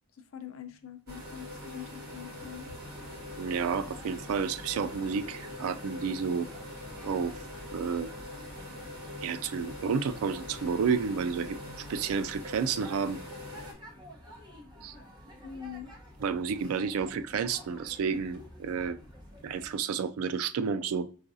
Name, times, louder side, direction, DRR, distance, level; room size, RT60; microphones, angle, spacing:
voice 1, 0.3-2.7 15.4-15.9, left 9 dB, 70° left, 0.5 m, -44 dB
sound 1, 1.1-13.7, left 1 dB, 45° right, 1.2 m, -43 dB
sound 2, 2.8-19.7, equal, 20° right, 0.8 m, -51 dB
voice 2, 3.4-6.5 7.0-7.3 7.7-8.1 9.2-13.2 14.8-14.9 16.2-19.0 19.4-21.1, right 6 dB, 80° right, 0.3 m, -31 dB
4.7 x 2.4 x 2.6 m
head